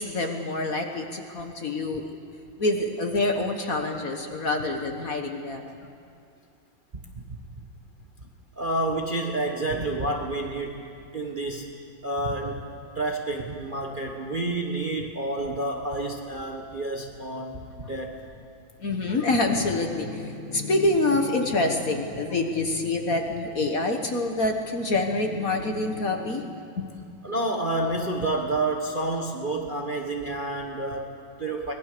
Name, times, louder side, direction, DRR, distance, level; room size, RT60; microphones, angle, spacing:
voice 1, 0.0-2.1 2.6-5.8 18.8-26.9, left 2 dB, 45° left, 4 dB, 1.6 m, -26 dB
voice 2, 8.6-10.8 11.1-11.7 12.0-12.7 12.9-18.2 27.2-31.7, right 2 dB, 30° right, 1 dB, 1.1 m, -29 dB
24.0 x 20.0 x 6.8 m, 2.4 s
omnidirectional pair, 2.4 m